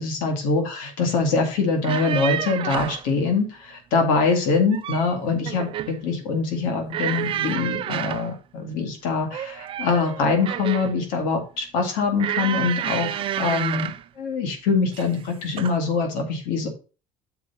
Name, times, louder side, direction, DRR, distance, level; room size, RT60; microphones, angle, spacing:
voice 1, 0.0-16.7, left 4 dB, 85° left, 4 dB, 2.0 m, -24 dB
sound 1, 1.7-3.1 4.5-5.1 5.5-6.0 6.9-8.3 9.3-11.0 12.2-14.0 14.9-15.2 15.6-15.8, right 11 dB, 40° right, 0.5 m, -29 dB
6.9 x 4.7 x 5.6 m, 0.35 s
cardioid pair, 140°, 14 cm